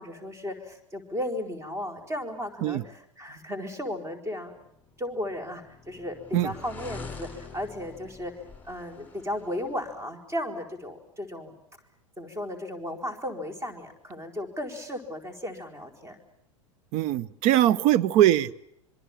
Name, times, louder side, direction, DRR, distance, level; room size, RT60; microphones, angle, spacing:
voice 1, 0.0-4.5 5.0-8.3 8.6-11.6 12.2-16.2, left 1 dB, 15° right, 6 dB, 4.6 m, -35 dB
sound 1, 5.1-10.0, left 4 dB, 10° left, 6.4 m, -45 dB
voice 2, 16.9-18.6, right 13 dB, 45° right, 15 dB, 1.0 m, -21 dB
25.5 x 23.5 x 7.4 m, 0.75 s
figure-of-eight pair, 85°, 17 cm